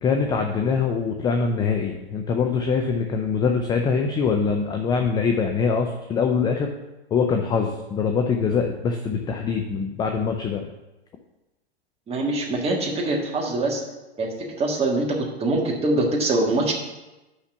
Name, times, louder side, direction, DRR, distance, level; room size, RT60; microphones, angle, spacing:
voice 1, 0.0-6.7 7.1-10.7, left 5 dB, 15° left, 4 dB, 0.4 m, -23 dB
voice 2, 12.1-13.8 14.2-16.7, right 2 dB, 20° right, 0 dB, 1.6 m, -24 dB
5.8 x 5.7 x 6.7 m, 1.0 s
hypercardioid pair, 115°, 32 cm